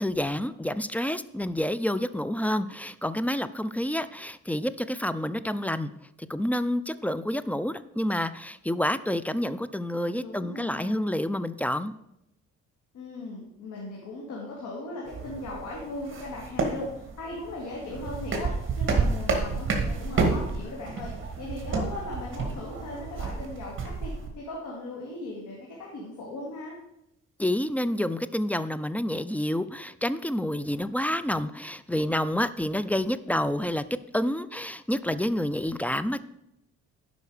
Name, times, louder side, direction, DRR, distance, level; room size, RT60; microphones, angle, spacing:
voice 1, 0.0-5.9 6.2-11.9 27.4-33.8 34.1-36.2, left 1 dB, 5° left, 14 dB, 0.4 m, -28 dB
voice 2, 10.0-11.1 12.9-18.5 18.8-26.8, left 2 dB, 75° left, -3 dB, 2.3 m, -38 dB
sound 1, 15.1-24.3, right 4 dB, 40° right, 2.1 m, -30 dB
11.5 x 5.3 x 5.0 m, 0.84 s
cardioid pair, 90°, 30 cm